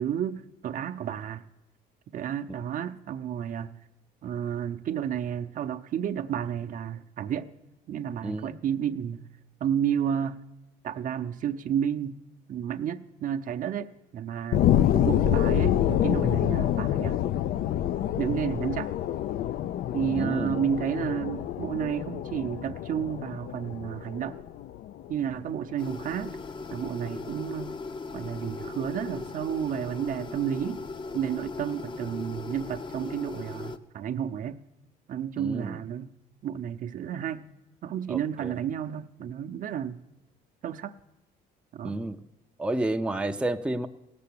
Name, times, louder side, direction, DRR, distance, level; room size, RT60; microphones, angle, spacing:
voice 1, 0.0-1.4 2.1-3.7 4.2-7.5 7.9-9.2 9.6-10.4 10.8-12.2 12.5-14.7 14.9-17.2 18.2-18.9 19.9-24.4 25.1-26.4 26.7-27.8 28.1-30.8 31.1-34.6 35.1-36.1 36.4-37.4 37.8-40.0 40.6-40.9 41.7-42.0, right 9 dB, 50° right, 8 dB, 0.6 m, -31 dB
voice 2, 8.2-8.6 20.1-20.6 35.4-35.8 38.1-38.5 41.8-42.2 42.6-43.9, right 1 dB, 5° right, 5 dB, 0.5 m, -30 dB
sound 1, 14.5-25.5 26.0-26.1, left 11 dB, 60° left, 0.4 m, -27 dB
sound 2, 25.8-33.8, left 3 dB, 30° left, 0.7 m, -38 dB
16.5 x 6.9 x 8.5 m, 0.97 s
cardioid pair, 110°, 17 cm